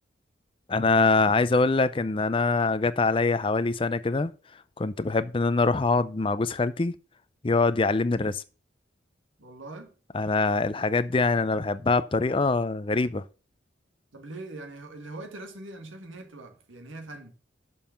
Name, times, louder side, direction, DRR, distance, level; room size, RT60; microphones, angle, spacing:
voice 1, 0.7-4.3 4.8-6.9 7.4-8.4 10.1-13.2, left 3 dB, 25° left, 0.4 m, -24 dB
voice 2, 9.4-9.9 14.1-17.3, right 2 dB, 85° right, 1.8 m, -42 dB
6.9 x 5.4 x 7.1 m
head